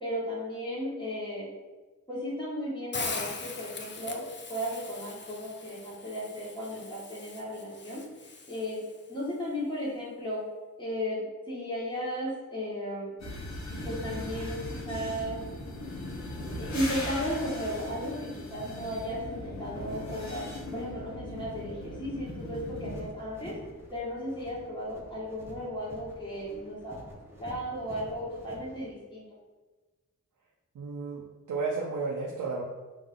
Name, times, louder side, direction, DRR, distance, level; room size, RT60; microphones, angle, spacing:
voice 1, 0.0-1.5 2.1-4.2 4.5-8.0 8.5-8.8 9.1-10.4 10.8-13.1 13.8-15.4 16.6-23.5 23.9-27.0 27.3-29.2, equal, 15° left, -8 dB, 1.4 m, -35 dB
Hiss, 2.9-9.0, left 4 dB, 40° left, 0.5 m, -41 dB
sound 1, 13.2-23.0, left 1 dB, 65° left, 1.0 m, -38 dB
sound 2, 22.7-28.9, right 1 dB, 10° right, 0.9 m, -49 dB
voice 2, 30.7-32.6, right 4 dB, 80° right, -2 dB, 0.5 m, -33 dB
3.4 x 2.7 x 3.6 m, 1.2 s
cardioid pair, 45°, 30 cm